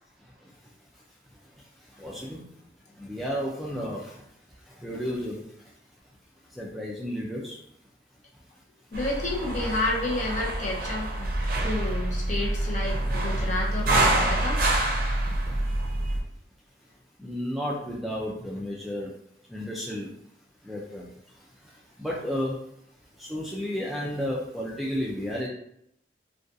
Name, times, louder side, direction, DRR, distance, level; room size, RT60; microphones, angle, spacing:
voice 1, 0.2-0.6 0.9-1.0 1.3-2.5 2.9-4.3 4.6-5.7 6.4-7.6 15.3-15.5 17.2-19.1 19.5-20.1 20.6-22.8 23.1-25.5, equal, ahead, -5 dB, 0.3 m, -33 dB
voice 2, 8.9-11.3 11.6-14.6, left 2 dB, 45° left, -3 dB, 0.7 m, -30 dB
sound 1, 8.9-16.2, right 1 dB, 55° right, 0.5 m, -26 dB
2.5 x 2.3 x 2.5 m, 0.73 s
head